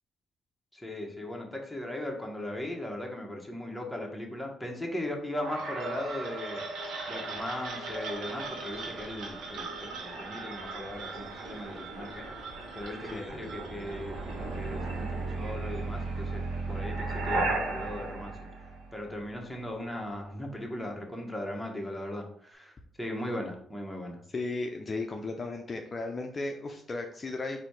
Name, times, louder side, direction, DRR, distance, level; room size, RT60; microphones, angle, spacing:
voice 1, 0.7-6.6 7.1-12.3 12.7-18.3 18.9-24.2, left 1 dB, ahead, 0 dB, 1.1 m, -38 dB
sound 1, 5.4-19.3, right 3 dB, 80° right, 1.2 m, -36 dB
voice 2, 24.3-27.6, left 3 dB, 35° left, 3 dB, 0.5 m, -35 dB
4.0 x 2.8 x 4.7 m, 0.62 s
cardioid pair, 90°, 0 cm